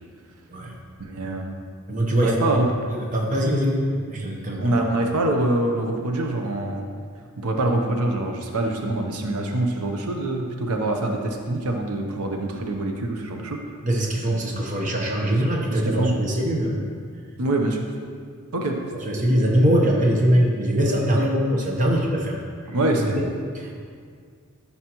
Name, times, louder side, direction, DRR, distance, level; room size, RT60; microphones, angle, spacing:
voice 1, 1.0-1.6 2.2-2.7 4.6-6.9 7.4-13.6 15.3-15.4 15.7-16.2 17.4-17.8 18.5-18.8 22.7-23.2, right 2 dB, 90° right, 3 dB, 0.8 m, -25 dB
voice 2, 1.9-2.6 2.9-4.8 13.8-16.8 19.1-22.4 23.2-23.3 23.5-23.8, equal, 35° right, -1 dB, 0.9 m, -22 dB
11.0 x 5.8 x 3.0 m, 2.1 s
head